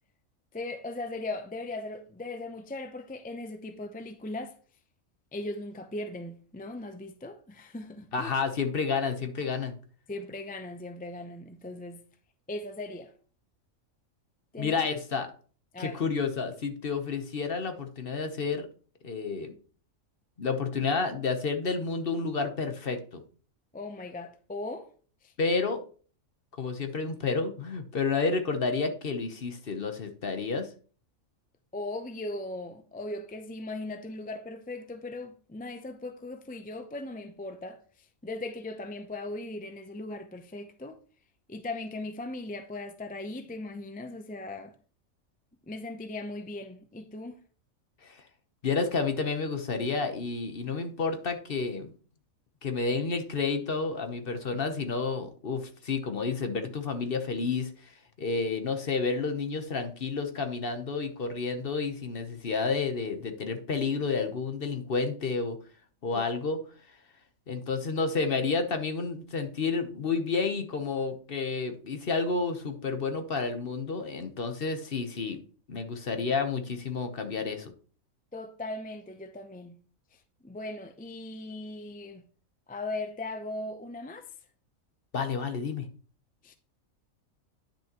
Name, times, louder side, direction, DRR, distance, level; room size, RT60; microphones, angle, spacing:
voice 1, 0.5-4.6 5.3-8.3 10.1-12.0 12.5-13.1 14.5-14.8 15.7-16.0 23.7-24.9 25.2-25.3 31.7-41.0 41.5-44.7 45.7-47.4 66.1-66.2 78.3-79.8 80.1-82.2 82.7-84.3 86.4-86.5, left 2 dB, 15° left, 0.4 m, -38 dB
voice 2, 8.1-9.8 14.6-15.3 15.8-18.7 19.0-19.5 20.4-23.0 25.4-25.8 26.6-30.7 48.0-48.2 48.6-51.9 52.6-65.6 66.0-66.6 67.5-75.4 75.7-77.7 85.1-85.9, left 4 dB, 45° left, 1.1 m, -30 dB
10.0 x 6.2 x 3.0 m
omnidirectional pair, 1.4 m